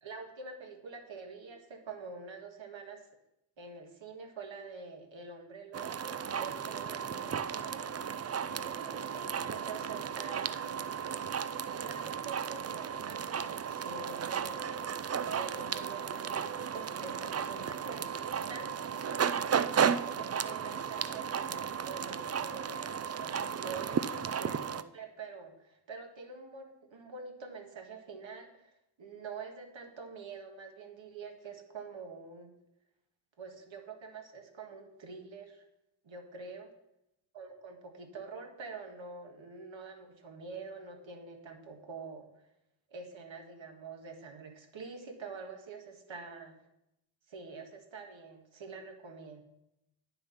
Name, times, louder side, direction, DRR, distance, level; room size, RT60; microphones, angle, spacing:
voice 1, 0.0-3.1 3.6-8.1 8.4-10.6 11.7-14.8 15.2-18.7 19.5-32.5 33.4-35.6 36.0-36.7 37.3-42.3 42.9-46.6 47.3-49.4, right 4 dB, 70° right, 3 dB, 1.8 m, -46 dB
sound 1, 5.7-24.8, right 7 dB, 35° right, 0.4 m, -34 dB
9.4 x 6.8 x 5.7 m, 0.84 s
cardioid pair, 75°, 47 cm